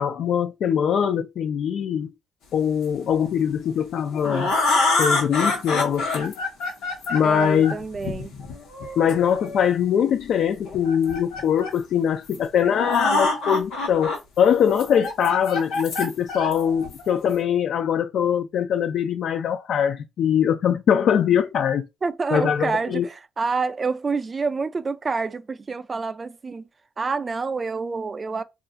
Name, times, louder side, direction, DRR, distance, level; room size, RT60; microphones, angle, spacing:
voice 1, 0.0-2.1 2.5-4.5 4.9-6.4 7.1-7.8 9.0-21.9 22.3-23.1, left 8 dB, 70° left, 0.3 m, -22 dB
sound 1, 3.8-9.7 10.7-11.8 12.3-12.4 12.6-14.2 14.6-17.3, left 2 dB, 90° left, 1.0 m, -26 dB
voice 2, 7.2-8.3 22.0-26.6 27.0-28.4, right 4 dB, 30° right, 0.3 m, -27 dB
2.4 x 2.3 x 3.8 m
cardioid pair, 90°, 0 cm